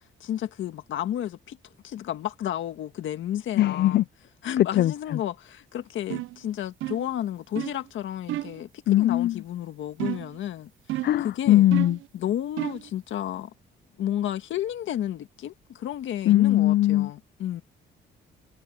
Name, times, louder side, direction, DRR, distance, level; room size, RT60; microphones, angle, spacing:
voice 1, 0.2-1.6 1.8-4.1 4.4-10.7 11.2-11.7 12.1-13.5 14.0-17.6, left 11 dB, 75° left, 1.8 m, -32 dB
voice 2, 3.6-4.0 4.7-4.9 8.9-9.4 11.0-12.0 16.3-17.1, left 14 dB, 55° left, 0.4 m, -20 dB
sound 1, 6.1-6.4 6.8-7.1 7.6-7.8 8.3-8.6 10.0-10.4 10.9-11.3 11.7-12.1 12.6-12.9, right 15 dB, 85° right, 0.6 m, -32 dB
cardioid pair, 90°, 20 cm